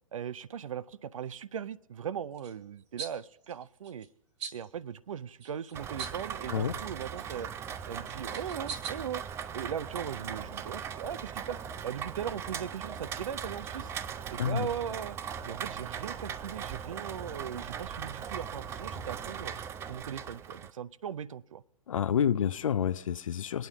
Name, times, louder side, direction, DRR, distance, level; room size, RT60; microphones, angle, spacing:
voice 1, 0.1-4.1 4.5-7.5 7.9-9.2 9.5-13.9 14.3-15.2 15.4-19.5 19.9-21.6, right 8 dB, 75° right, 0.5 m, -39 dB
sound 1, 2.4-2.5 3.0-3.2 3.4-4.1 4.4-4.7 5.4-6.3 6.6-7.4 8.0-8.9, right 5 dB, 55° right, 1.8 m, -41 dB
Rain, 5.7-20.7, right 8 dB, 15° right, 0.4 m, -39 dB
voice 2, 21.9-23.7, left 8 dB, 70° left, 0.5 m, -29 dB
24.0 x 9.2 x 3.5 m
figure-of-eight pair, 115°, 17 cm